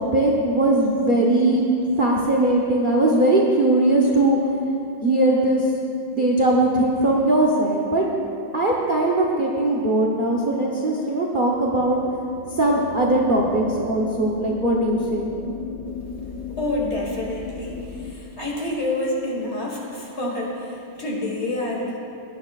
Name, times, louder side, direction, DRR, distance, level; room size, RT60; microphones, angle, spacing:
voice 1, 0.0-1.7 2.0-4.4 5.0-5.6 6.1-8.1 8.5-12.0 12.6-15.3, right 1 dB, 45° right, -3 dB, 0.7 m, -20 dB
sound 1, 11.4-18.1, left 6 dB, 65° left, 0.7 m, -35 dB
voice 2, 16.6-22.0, left 1 dB, 35° left, -2 dB, 1.7 m, -28 dB
16.5 x 11.0 x 2.4 m, 2.7 s
omnidirectional pair, 2.1 m